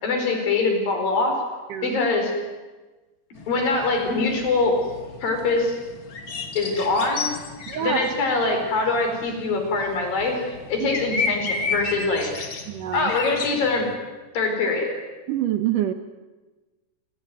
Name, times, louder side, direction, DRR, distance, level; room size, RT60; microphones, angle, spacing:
voice 1, 0.0-1.4 1.8-2.3 3.5-4.8 5.2-5.8 6.5-7.3 7.8-12.3 12.9-13.9 14.3-14.9, left 3 dB, 60° left, 4 dB, 6.3 m, -23 dB
sound 1, 3.4-13.9, left 4 dB, 35° left, 2.6 m, -33 dB
voice 2, 7.7-8.1 10.8-10.9 12.7-13.0 15.3-15.9, right 12 dB, 65° right, 8 dB, 2.3 m, -25 dB
28.5 x 18.0 x 9.4 m, 1.2 s
omnidirectional pair, 4.6 m